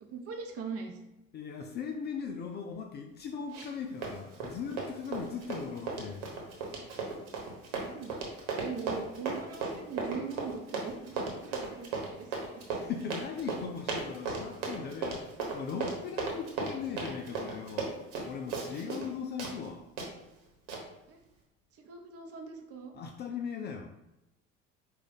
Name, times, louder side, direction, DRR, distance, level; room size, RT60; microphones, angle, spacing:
voice 1, 0.0-1.0 7.8-12.6 21.1-21.2 21.7-22.9, right 5 dB, 35° right, 4 dB, 0.8 m, -41 dB
voice 2, 1.3-6.2 12.8-17.9 18.2-19.9 22.9-23.9, left 6 dB, 30° left, 4 dB, 0.4 m, -39 dB
Run, 3.5-19.1 19.4-19.5 20.0-20.1 20.7-20.8, right 4 dB, 60° right, 1.2 m, -36 dB
4.8 x 2.4 x 3.8 m, 0.91 s
figure-of-eight pair, 65°, 39 cm